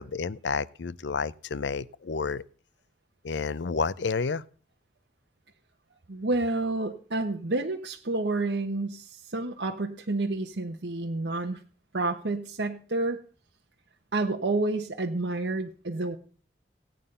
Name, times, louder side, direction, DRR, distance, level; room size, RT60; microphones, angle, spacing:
voice 1, 0.0-2.4 3.2-4.4, left 5 dB, 85° left, 0.6 m, -30 dB
voice 2, 6.1-11.6 11.9-13.2 14.1-16.2, right 2 dB, 85° right, 1.1 m, -29 dB
17.0 x 9.2 x 5.5 m
head